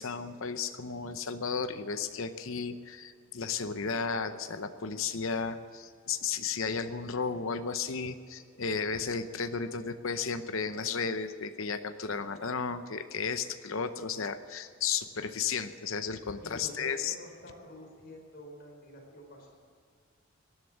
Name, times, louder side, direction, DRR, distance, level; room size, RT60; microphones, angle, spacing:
voice 1, 0.0-17.1, left 5 dB, 65° left, 9 dB, 0.8 m, -34 dB
voice 2, 16.4-19.5, equal, 45° left, 0 dB, 4.8 m, -48 dB
19.5 x 11.5 x 6.4 m, 2.2 s
head